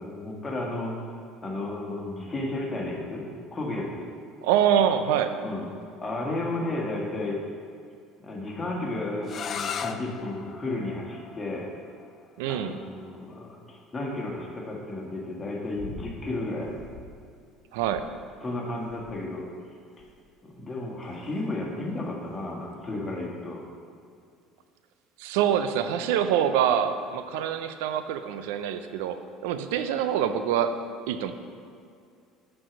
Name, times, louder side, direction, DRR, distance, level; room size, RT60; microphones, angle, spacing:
voice 1, 0.0-4.1 5.4-5.7 6.0-7.5 8.2-11.7 12.4-16.7 18.4-19.5 20.0-20.1 20.4-23.7 26.2-26.3, left 2 dB, 25° left, -1 dB, 1.6 m, -33 dB
voice 2, 4.4-5.3 12.4-12.8 17.7-18.0 25.2-29.2 29.4-30.7 31.1-31.3, right 9 dB, 80° right, 9 dB, 0.4 m, -25 dB
sound 1, 9.2-15.0, left 7 dB, 45° left, 0.4 m, -39 dB
sound 2, 15.7-16.2 16.6-17.2 17.8-18.4 18.9-19.3 20.0-20.3 21.0-21.4 22.3-22.4, left 4 dB, 70° left, 1.0 m, -45 dB
6.2 x 4.8 x 6.1 m, 2.4 s
hypercardioid pair, 75°, 0 cm